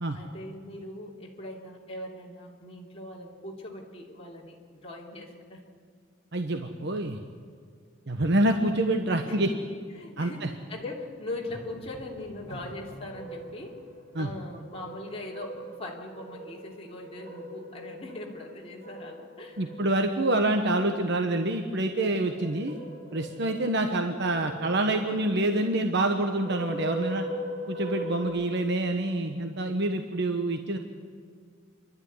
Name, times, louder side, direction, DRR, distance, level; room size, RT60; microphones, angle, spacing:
voice 1, 0.1-5.6 9.2-9.6 9.9-13.8 14.2-19.8 23.8-24.2 24.9-25.0, left 1 dB, 30° left, -3 dB, 3.0 m, -40 dB
voice 2, 6.3-7.2 8.1-9.5 10.2-10.5 14.1-14.3 19.6-22.8 23.1-27.3 27.7-30.8, right 1 dB, 60° right, 6 dB, 1.2 m, -27 dB
sound 1, 11.3-28.3, right 1 dB, 15° left, 6.6 m, -41 dB
28.5 x 12.0 x 9.7 m, 2.1 s
head